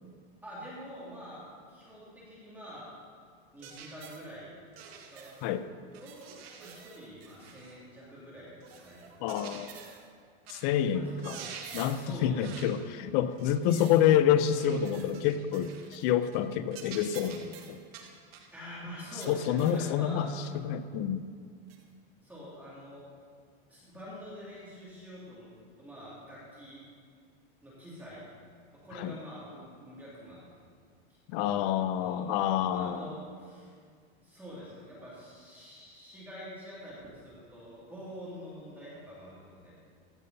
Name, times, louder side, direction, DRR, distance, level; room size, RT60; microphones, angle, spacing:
voice 1, 0.4-2.9 3.5-4.5 5.1-5.3 6.0-6.3 6.6-9.4 10.9-11.2 11.8-12.7 18.5-20.2 22.2-23.1 23.7-26.8 27.6-28.3 28.7-30.5 31.4-32.4 32.7-33.7 34.2-39.7, equal, 5° right, -8 dB, 2.5 m, -46 dB
sound 1, 3.6-4.3 4.8-5.5 5.9-7.8 8.6-10.1 10.5-10.8 11.1-12.1 12.4-12.8 13.4-14.1 14.5-16.1 16.3-16.5 16.7-18.5 19.2-19.9 20.4-20.6 21.7-21.8, right 7 dB, 75° right, 1.5 m, -48 dB
voice 2, 9.2-9.7 10.5-11.4 11.7-17.8 19.3-20.3 20.6-21.3 29.0-29.1 31.3-33.1, left 10 dB, 35° left, 12 dB, 0.4 m, -28 dB
15.5 x 5.4 x 5.4 m, 2.1 s
supercardioid pair, 160°, 31 cm